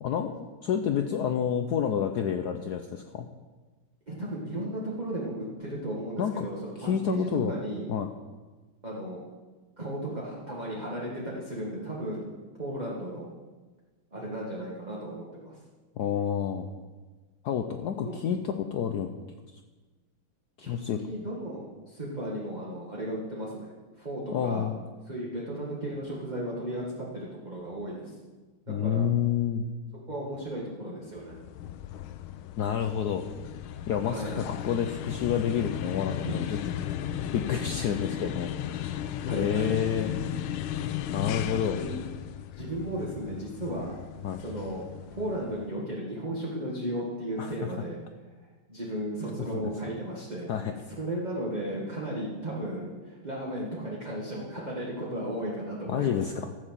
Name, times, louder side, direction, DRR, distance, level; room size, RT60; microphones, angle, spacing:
voice 1, 0.0-3.3 6.2-6.5 6.8-7.5 7.9-8.1 16.0-16.7 17.4-19.1 20.7-21.0 24.3-24.8 28.7-29.6 32.6-33.3 33.9-36.6 37.3-39.0 39.3-40.1 41.1-41.8 44.2-44.4 47.4-47.7 49.4-49.7 50.5-50.7 55.9-56.5, left 8 dB, 70° left, 6 dB, 1.0 m, -29 dB
voice 2, 4.1-7.9 8.8-9.2 9.8-12.3 12.6-13.3 14.1-15.6 18.0-18.2 20.6-20.8 21.0-24.7 25.1-28.1 28.7-29.1 30.1-31.4 34.1-34.4 36.2-36.3 39.3-39.7 41.7-42.0 42.5-44.0 44.4-44.8 45.1-48.0 48.7-50.5 50.9-56.2, right 1 dB, 20° right, -5 dB, 1.8 m, -35 dB
sound 1, 31.2-45.7, left 11 dB, 90° left, 1.5 m, -36 dB
13.5 x 6.5 x 7.5 m, 1.3 s
omnidirectional pair, 2.3 m